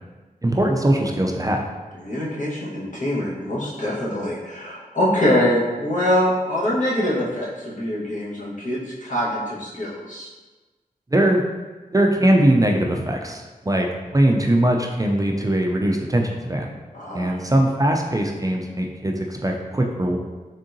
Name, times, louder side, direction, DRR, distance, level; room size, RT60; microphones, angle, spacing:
voice 1, 0.4-1.6 11.1-11.4 11.9-16.7 17.1-20.2, right 1 dB, 25° right, 1 dB, 0.4 m, -20 dB
voice 2, 2.0-10.3 16.9-17.3, left 1 dB, 55° left, -7 dB, 1.3 m, -24 dB
3.6 x 3.6 x 2.7 m, 1.2 s
cardioid pair, 45°, 15 cm